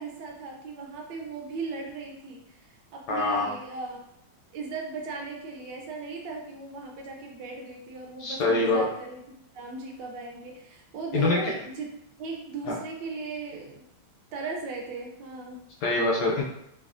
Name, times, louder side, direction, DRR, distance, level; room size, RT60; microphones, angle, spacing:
voice 1, 0.0-4.0 4.5-11.9 12.2-13.8 14.3-15.6, right 4 dB, 75° right, 1 dB, 1.2 m, -37 dB
voice 2, 3.1-3.5 8.2-8.8 11.1-11.4 12.7-12.8 15.8-16.4, left 3 dB, 70° left, -2 dB, 1.0 m, -24 dB
3.2 x 2.3 x 2.4 m, 0.80 s
omnidirectional pair, 2.1 m